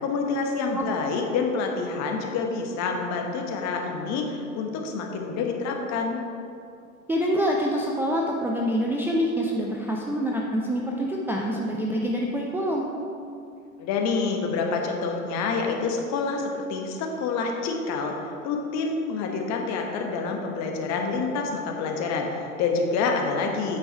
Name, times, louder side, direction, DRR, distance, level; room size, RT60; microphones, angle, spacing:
voice 1, 0.0-6.2 13.8-18.2 18.4-23.8, left 4 dB, 40° left, 2 dB, 1.2 m, -27 dB
voice 2, 7.1-12.9, equal, 5° right, -3 dB, 0.4 m, -26 dB
8.7 x 5.3 x 4.6 m, 2.6 s
figure-of-eight pair, 85°, 42 cm